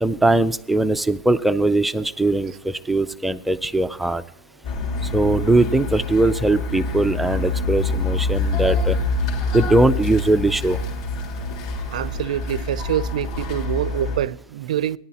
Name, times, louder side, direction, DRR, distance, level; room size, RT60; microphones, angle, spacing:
voice 1, 0.0-4.2 5.1-9.0 9.5-10.8, right 2 dB, 5° right, 0.4 m, -20 dB
sound 1, 4.6-14.2, left 3 dB, 45° left, 3.1 m, -26 dB
voice 2, 11.9-15.0, right 11 dB, 85° right, 0.6 m, -25 dB
18.0 x 10.5 x 2.9 m
supercardioid pair, 170°, 4 cm